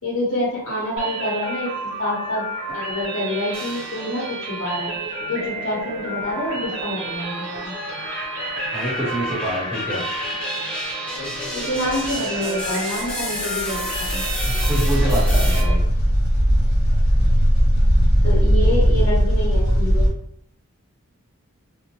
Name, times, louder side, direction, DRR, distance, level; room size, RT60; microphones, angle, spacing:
voice 1, 0.0-1.7 2.0-2.4 2.7-4.9 5.3-7.7 11.5-14.2 18.2-20.1, left 1 dB, 60° left, -6 dB, 1.2 m, -27 dB
sound 1, 1.0-15.7, right 2 dB, 55° right, 0.7 m, -32 dB
sound 2, 3.5-4.4 4.9-15.6, left 1 dB, 25° left, 0.9 m, -32 dB
voice 2, 8.7-10.0 14.5-15.8 16.9-17.0, right 1 dB, 10° right, -7 dB, 0.7 m, -26 dB
sound 3, 11.2-12.8 13.1-13.2 13.6-20.1, equal, 75° left, 0.9 m, -19 dB
2.6 x 2.1 x 2.9 m, 0.71 s
head